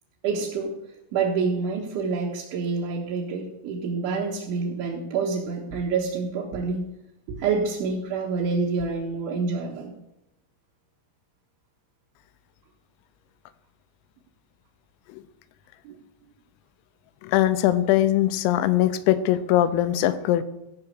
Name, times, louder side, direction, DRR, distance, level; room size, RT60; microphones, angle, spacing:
voice 1, 0.2-0.7 1.1-6.9 7.3-9.9 15.9-16.0, right 4 dB, 70° right, -4 dB, 3.6 m, -27 dB
voice 2, 17.2-20.4, left 13 dB, 90° left, 12 dB, 3.4 m, -21 dB
17.0 x 5.8 x 6.7 m, 0.89 s
omnidirectional pair, 5.9 m